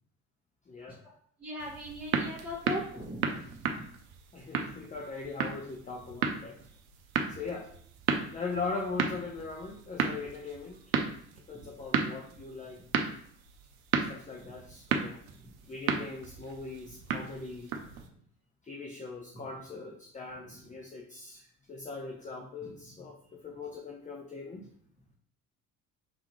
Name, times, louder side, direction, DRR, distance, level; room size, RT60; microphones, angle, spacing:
voice 1, 0.7-1.0 4.3-6.6 7.3-7.7 8.3-10.8 11.5-12.8 14.0-15.2 15.7-17.7 18.6-24.6, left 4 dB, 20° left, 1 dB, 0.7 m, -40 dB
voice 2, 1.4-3.9 11.6-11.8 12.7-12.9 14.4-14.5 15.4-15.5 17.9-18.2 19.3-19.5 20.4-20.8 22.6-22.8, left 1 dB, 5° right, -8 dB, 1.6 m, -41 dB
sound 1, 1.6-18.1, right 6 dB, 75° right, 0.6 m, -34 dB
4.8 x 3.6 x 3.0 m, 0.62 s
figure-of-eight pair, 55°, 42 cm